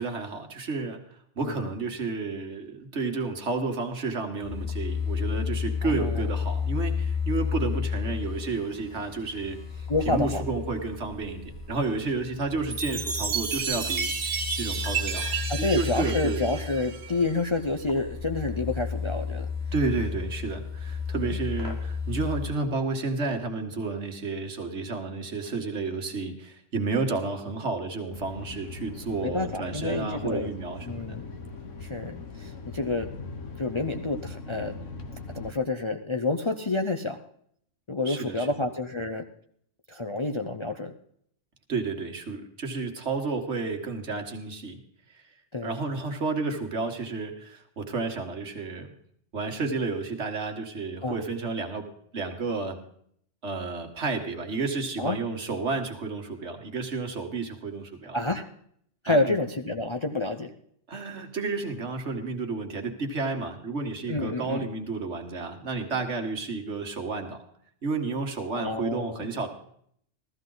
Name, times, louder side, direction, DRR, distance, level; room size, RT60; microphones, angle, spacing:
voice 1, 0.0-16.6 19.7-31.2 38.1-38.5 41.7-44.8 45.1-45.3 45.6-48.9 49.3-52.8 53.4-58.2 59.1-59.3 60.9-67.4 67.8-69.5, right 3 dB, 65° right, 4 dB, 1.8 m, -31 dB
sound 1, 4.4-22.5, left 6 dB, 55° left, 1.9 m, -33 dB
voice 2, 5.8-6.3 9.9-10.4 15.5-19.5 21.2-21.3 29.2-30.5 30.9-31.3 31.8-33.1 33.6-34.7 35.3-37.2 37.9-39.2 39.9-40.9 45.5-45.8 51.0-51.2 55.0-55.2 58.1-58.5 59.0-60.5 64.1-64.7 68.5-69.3, left 2 dB, 30° left, 5 dB, 0.6 m, -29 dB
Chime, 12.7-17.3, right 6 dB, 90° right, 1.4 m, -31 dB
sound 2, 28.1-35.5, left 3 dB, 80° left, 1.5 m, -40 dB
15.0 x 14.0 x 3.9 m, 0.65 s
omnidirectional pair, 1.3 m